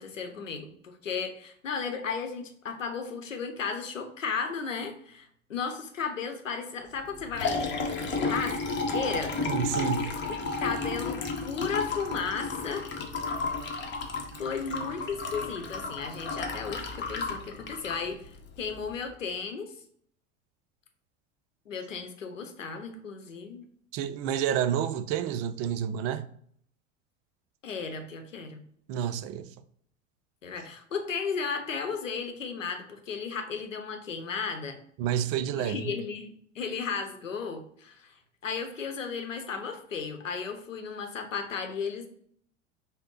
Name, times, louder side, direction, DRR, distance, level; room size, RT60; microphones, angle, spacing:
voice 1, 0.0-9.4 10.3-12.9 14.4-19.7 21.7-23.6 27.6-28.6 30.4-34.8 35.6-38.2 38.4-42.1, left 5 dB, 85° left, 0.8 m, -35 dB
Liquid, 7.0-19.0, left 3 dB, 30° left, 0.9 m, -33 dB
voice 2, 9.4-10.1 23.9-26.3 28.9-29.5 35.0-35.9, right 9 dB, 40° right, 0.4 m, -29 dB
5.3 x 2.1 x 3.7 m
figure-of-eight pair, 80°, 37 cm